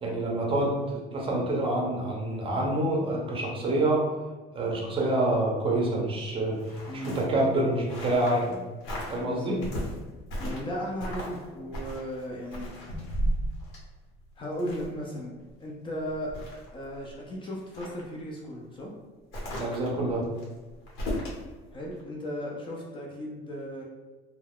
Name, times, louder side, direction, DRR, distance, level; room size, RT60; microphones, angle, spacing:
voice 1, 0.0-4.0 4.5-8.6 9.1-9.6 19.5-20.2, right 1 dB, 25° right, -2 dB, 0.5 m, -27 dB
sound 1, 6.5-8.5 8.8-9.2 9.6-10.7 11.0-11.4 11.7-15.0 15.5-15.6 16.0-17.1 17.6-18.1 19.3-21.4 21.9-22.0, equal, 85° left, 1.1 m, -35 dB
voice 2, 9.3-9.6 10.4-12.7 14.4-16.3 16.7-18.9 21.7-23.8, equal, 25° left, -2 dB, 0.3 m, -36 dB
2.3 x 2.2 x 3.4 m, 1.3 s
cardioid pair, 160°, 21 cm